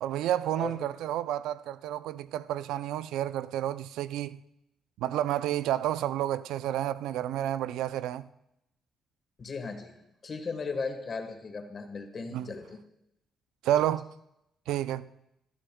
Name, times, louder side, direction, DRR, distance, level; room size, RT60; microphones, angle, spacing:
voice 1, 0.0-4.4 5.0-8.3 12.3-12.5 13.6-14.1 14.7-15.1, right 12 dB, 90° right, 0.4 m, -30 dB
voice 2, 9.4-10.0 10.2-12.8, left 4 dB, 40° left, 1.4 m, -36 dB
21.5 x 12.5 x 2.3 m
cardioid pair, 90°, 0 cm